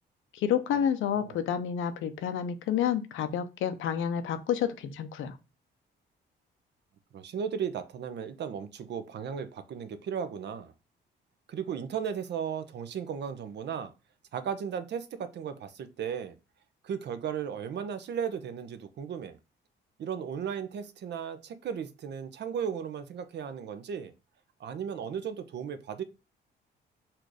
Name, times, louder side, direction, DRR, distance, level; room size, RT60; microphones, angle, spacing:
voice 1, 0.3-5.4, left 9 dB, 80° left, 0.7 m, -29 dB
voice 2, 7.1-10.7 11.5-13.9 14.3-16.4 16.8-19.4 20.0-24.1 24.6-26.0, right 7 dB, 60° right, 0.7 m, -35 dB
4.4 x 2.6 x 4.7 m
cardioid pair, 90°, 20 cm